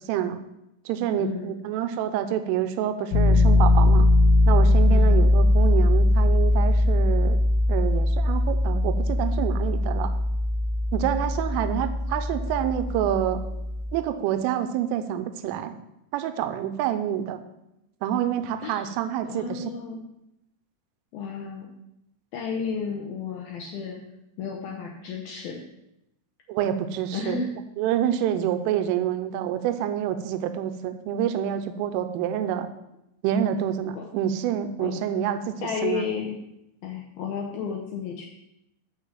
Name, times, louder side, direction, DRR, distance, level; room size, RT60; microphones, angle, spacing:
voice 1, 0.1-0.4 0.9-4.1 4.5-7.4 7.7-10.1 10.9-13.4 13.9-15.7 16.1-17.4 18.0-19.6 26.5-27.4 27.8-32.7 33.2-36.1, right 10 dB, 85° right, 9 dB, 3.3 m, -27 dB
voice 2, 1.1-1.6 4.9-5.2 18.6-18.8 19.2-20.0 21.1-21.7 22.3-24.0 24.4-25.6 27.1-27.5 34.0-34.1 34.8-34.9 35.6-36.4 36.8-38.3, left 6 dB, 90° left, 0 dB, 2.1 m, -32 dB
Piano, 3.1-13.9, left 1 dB, 70° left, 2.6 m, -20 dB
12.5 x 4.9 x 7.4 m, 0.86 s
omnidirectional pair, 5.8 m